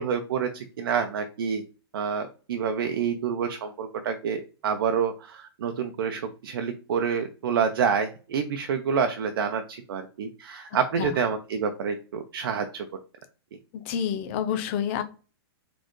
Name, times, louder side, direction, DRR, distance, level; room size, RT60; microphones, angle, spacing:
voice 1, 0.0-1.6 1.9-12.9, right 6 dB, 60° right, 6 dB, 0.7 m, -28 dB
voice 2, 13.9-15.0, left 8 dB, 30° left, 8 dB, 0.6 m, -28 dB
4.2 x 3.8 x 3.1 m, 0.36 s
hypercardioid pair, 170°, 13 cm